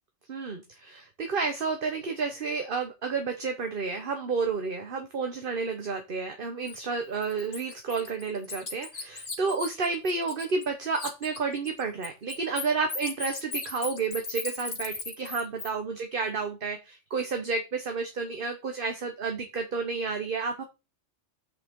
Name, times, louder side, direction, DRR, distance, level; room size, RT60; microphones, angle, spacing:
voice 1, 0.3-20.6, right 4 dB, 50° right, 5 dB, 1.3 m, -31 dB
Bird, 6.7-6.8 7.2-10.7 10.9-15.7, left 4 dB, 80° left, 2.1 m, -37 dB
8.3 x 6.5 x 3.7 m, 0.27 s
omnidirectional pair, 1.2 m